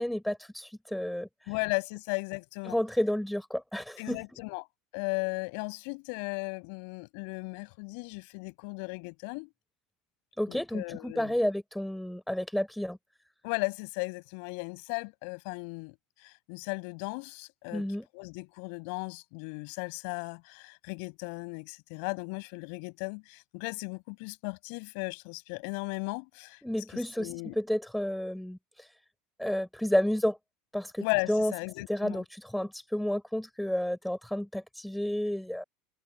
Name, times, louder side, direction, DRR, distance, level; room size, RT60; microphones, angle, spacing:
voice 1, 0.0-1.5 2.7-4.2 10.4-13.0 17.7-18.1 26.6-29.0 29.4-30.4 30.7-31.5 31.9-35.6, left 1 dB, ahead, 7.3 m, -31 dB
voice 2, 1.5-2.8 4.0-4.6 4.9-9.5 10.5-11.3 13.4-16.0 16.2-17.9 18.1-26.6 26.9-27.6 31.0-32.2, left 34 dB, 65° left, 7.9 m, -36 dB
supercardioid pair, 145°, 0 cm